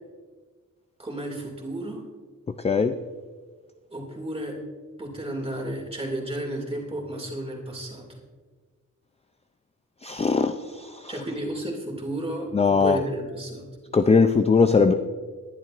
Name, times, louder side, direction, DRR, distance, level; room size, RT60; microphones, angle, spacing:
voice 1, 1.0-2.0 3.9-4.6 5.0-8.2 11.1-13.7, right 1 dB, 15° right, 0 dB, 2.3 m, -32 dB
voice 2, 10.0-11.1 12.5-13.0 13.9-14.9, left 5 dB, 20° left, 8 dB, 0.3 m, -20 dB
20.5 x 10.5 x 2.5 m, 1.5 s
wide cardioid pair, 165°, 33 cm